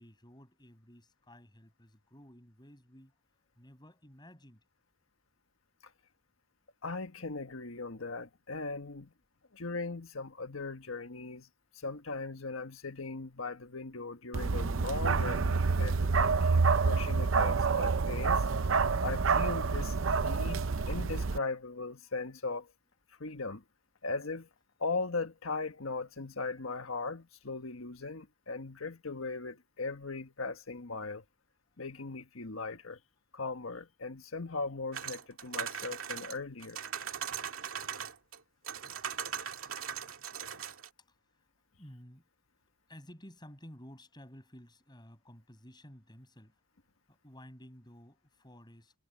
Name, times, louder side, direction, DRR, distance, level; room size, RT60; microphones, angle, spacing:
voice 1, 0.0-3.1 3.5-4.6 22.1-22.2 41.0-41.4 41.8-42.2 42.9-46.6 47.1-48.9, equal, 20° left, 6.5 m, -54 dB
voice 2, 6.8-9.1 9.5-11.5 11.7-18.4 19.0-22.7 23.2-23.6 24.0-24.5 24.8-31.2 31.8-33.0 33.3-36.8, left 3 dB, 85° left, 1.5 m, -39 dB
Bark, 14.3-21.4, right 4 dB, 70° right, 0.7 m, -28 dB
sound 1, 34.9-38.4 38.6-40.9, right 8 dB, 90° right, 2.1 m, -39 dB
head